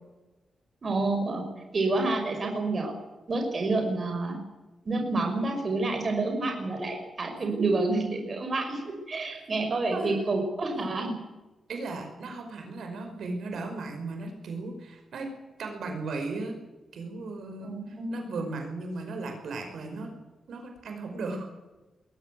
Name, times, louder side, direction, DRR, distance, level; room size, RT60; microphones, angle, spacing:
voice 1, 0.8-1.4 1.7-2.9 3.3-4.4 4.8-11.2 17.6-18.4, right 2 dB, 40° right, 3 dB, 5.7 m, -28 dB
voice 2, 11.7-15.3 15.6-16.6 16.9-20.1 20.5-21.5, right 3 dB, 75° right, 4 dB, 5.3 m, -36 dB
22.0 x 16.5 x 9.4 m, 1.1 s
wide cardioid pair, 135°, 0 cm